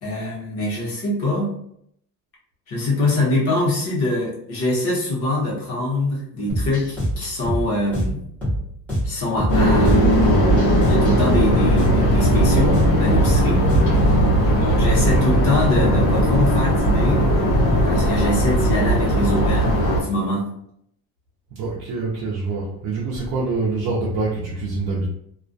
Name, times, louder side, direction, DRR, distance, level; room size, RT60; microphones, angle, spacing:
voice 1, 0.0-1.5 2.7-8.2 9.0-10.1 10.9-13.7 14.6-17.2 17.8-20.5, left 1 dB, 40° left, -5 dB, 0.9 m, -23 dB
sound 1, 6.5-14.1, equal, 5° left, 0.7 m, -26 dB
sound 2, 9.5-20.0, equal, 80° left, 0.9 m, -18 dB
voice 2, 14.4-14.8 21.5-25.1, right 3 dB, 55° right, -4 dB, 0.6 m, -25 dB
2.4 x 2.2 x 2.5 m, 0.71 s
cardioid pair, 180°, 37 cm